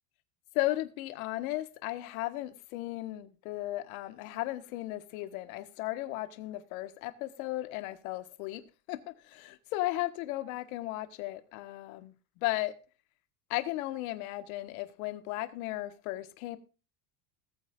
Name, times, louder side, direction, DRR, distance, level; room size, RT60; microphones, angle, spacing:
voice 1, 0.5-12.7 13.5-16.6, left 17 dB, 65° left, 1.5 m, -35 dB
20.0 x 8.8 x 2.5 m
supercardioid pair, 145°, 46 cm